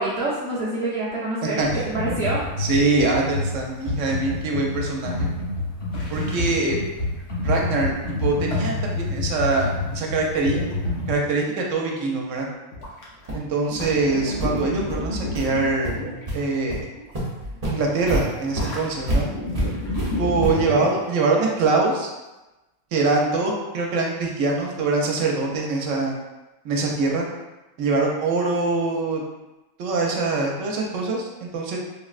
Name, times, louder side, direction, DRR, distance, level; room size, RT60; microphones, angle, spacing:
voice 1, 0.0-2.5, right 2 dB, 5° left, -9 dB, 0.4 m, -26 dB
Computer keyboard, 1.6-11.1, left 2 dB, 30° left, 0.8 m, -27 dB
voice 2, 2.6-5.3 6.1-6.8 7.4-10.6 11.1-12.4 13.3-16.0 16.3-16.9 17.6-19.3 20.2-22.1 22.9-26.2 26.6-27.3 27.8-29.2 29.8-31.8, right 3 dB, 80° right, 0 dB, 0.9 m, -23 dB
sound 1, 5.9-6.6 7.2-7.3 10.3-10.7 12.7-13.4 13.7-16.4 16.7-17.1 18.5-21.3, left 2 dB, 75° left, 1.0 m, -31 dB
sound 2, 12.8-12.9 13.3-13.5 13.8-13.9 14.4-14.5 14.9-15.0 15.3-15.5 15.8-16.4 16.7-16.8 17.1-20.8, right 1 dB, 40° right, 0.6 m, -28 dB
3.6 x 2.1 x 2.4 m, 1.1 s
omnidirectional pair, 1.3 m